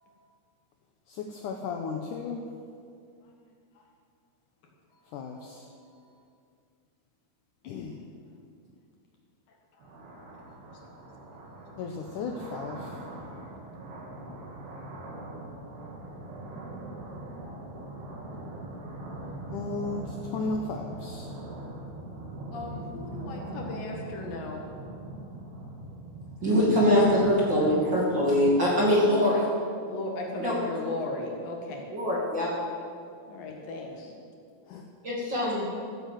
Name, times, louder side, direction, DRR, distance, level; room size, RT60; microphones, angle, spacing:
voice 1, 1.1-2.5 5.1-5.7 7.6-8.0 11.8-13.0 19.5-21.3 34.7-34.9, left 4 dB, 80° left, 3 dB, 1.8 m, -35 dB
sound 1, 9.8-29.0, right 2 dB, 70° right, 4.2 m, -41 dB
voice 2, 22.5-24.6 29.9-31.8 33.3-34.1, left 2 dB, 65° left, 1 dB, 3.2 m, -36 dB
voice 3, 26.4-29.4 30.4-30.5 31.9-32.5 35.0-35.7, equal, 35° right, -5 dB, 2.5 m, -23 dB
14.0 x 9.8 x 7.6 m, 2.3 s
omnidirectional pair, 4.8 m